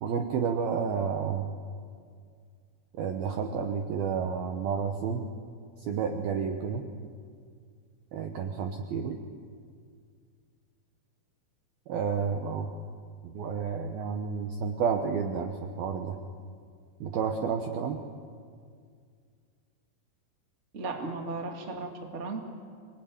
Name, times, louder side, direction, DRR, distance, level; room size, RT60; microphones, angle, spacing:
voice 1, 0.0-1.5 3.0-5.3 5.8-6.9 8.1-9.2 11.9-12.7 13.2-16.2 17.0-18.0, right 6 dB, 75° right, 4 dB, 2.2 m, -30 dB
voice 2, 20.7-22.4, right 3 dB, 45° right, 3 dB, 0.8 m, -35 dB
26.5 x 20.5 x 9.5 m, 2.1 s
omnidirectional pair, 6.0 m